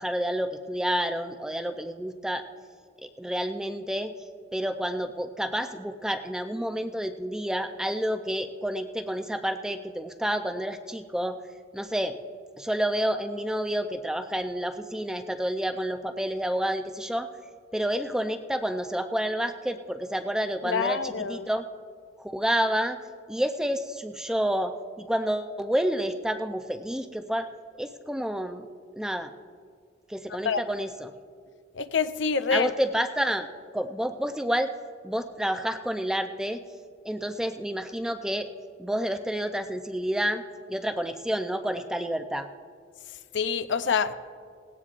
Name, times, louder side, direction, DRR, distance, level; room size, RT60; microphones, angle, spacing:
voice 1, 0.0-2.4 3.2-4.1 4.5-11.4 11.7-12.2 12.6-17.3 17.7-21.6 22.2-23.0 23.3-27.5 27.8-28.7 29.0-29.3 30.1-31.1 32.5-33.5 33.7-34.7 35.0-36.6 37.0-38.5 38.8-40.4 40.7-42.5, equal, 5° right, 7 dB, 0.4 m, -29 dB
voice 2, 20.6-21.5 30.3-30.6 31.7-32.7 43.3-44.1, left 5 dB, 70° left, 11 dB, 0.5 m, -26 dB
18.5 x 17.0 x 2.5 m, 2.1 s
head